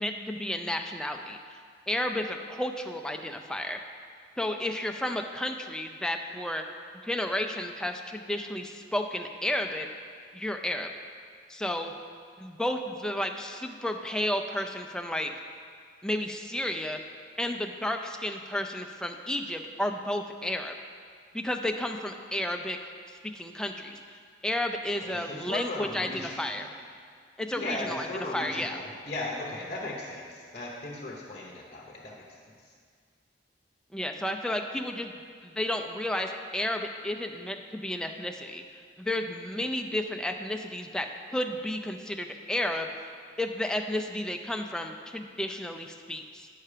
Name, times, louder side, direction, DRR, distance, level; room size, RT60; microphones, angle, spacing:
voice 1, 0.0-1.4 1.9-3.8 4.4-6.6 7.0-9.9 10.3-10.9 11.5-11.9 12.4-15.3 16.0-17.0 17.4-20.7 21.3-22.9 23.3-24.0 24.4-26.7 27.4-28.1 28.3-28.8 33.9-35.1 35.4-38.6 39.0-41.1 41.3-42.9 43.4-46.5, left 1 dB, 5° left, 4 dB, 0.4 m, -32 dB
voice 2, 24.9-26.6 27.5-32.3 32.6-32.7, left 2 dB, 35° left, -3 dB, 0.8 m, -37 dB
8.6 x 5.6 x 4.9 m, 2.1 s
head